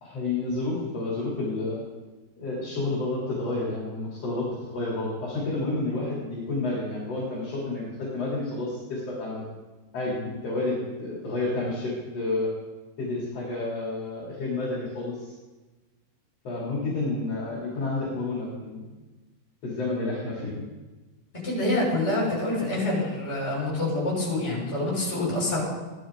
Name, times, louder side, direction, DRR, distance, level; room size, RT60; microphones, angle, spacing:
voice 1, 0.0-1.8 2.4-9.4 9.9-12.5 13.0-15.3 16.4-18.9 19.6-20.7, left 2 dB, 35° left, -6 dB, 3.4 m, -30 dB
voice 2, 21.4-25.6, left 2 dB, 10° left, -5 dB, 5.4 m, -26 dB
17.0 x 12.0 x 3.8 m, 1.2 s
omnidirectional pair, 5.9 m